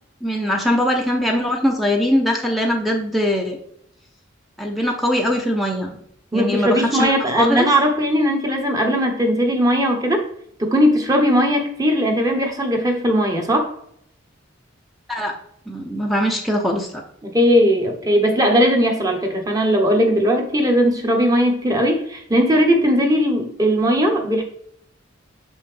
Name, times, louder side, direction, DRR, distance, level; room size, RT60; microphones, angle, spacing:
voice 1, 0.2-3.6 4.6-6.0 6.3-7.7 15.1-15.3 15.7-17.0, equal, ahead, 1 dB, 0.6 m, -21 dB
voice 2, 6.3-10.2 10.6-13.7 17.2-24.4, equal, 20° right, 2 dB, 1.0 m, -18 dB
6.7 x 5.5 x 3.3 m, 0.71 s
head